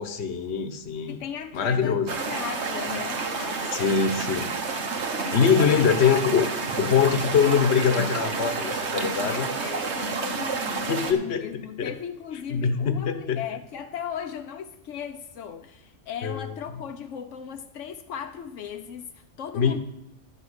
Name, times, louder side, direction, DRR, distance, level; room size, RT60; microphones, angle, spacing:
voice 1, 0.0-1.2 1.5-2.1 3.7-4.5 5.3-6.5 6.8-9.5 10.9-11.5 11.8-11.9 12.5-13.4 16.2-16.5 19.5-19.8, left 6 dB, 65° left, 9 dB, 1.2 m, -23 dB
voice 2, 1.1-4.3 5.2-5.7 9.1-19.8, left 8 dB, 85° left, 6 dB, 1.0 m, -37 dB
sound 1, 2.1-11.1, right 4 dB, 65° right, 1.4 m, -30 dB
11.0 x 5.6 x 8.0 m, 0.87 s
omnidirectional pair, 1.2 m